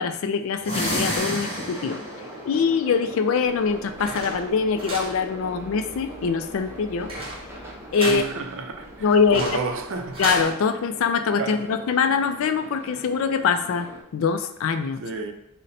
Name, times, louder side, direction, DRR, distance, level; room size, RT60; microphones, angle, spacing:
voice 1, 0.0-2.0 2.4-7.1 7.9-8.3 9.0-9.4 10.2-15.0, left 5 dB, 65° left, 0.3 m, -23 dB
sound 1, 0.6-2.2, equal, 25° left, 0.9 m, -28 dB
sound 2, 0.8-14.0, right 1 dB, 10° right, 0.5 m, -41 dB
sound 3, 3.4-10.5, right 1 dB, 25° right, 1.0 m, -35 dB
voice 2, 8.0-10.2 11.4-11.7 15.0-15.3, right 3 dB, 65° right, 0.5 m, -31 dB
3.9 x 2.1 x 4.1 m
head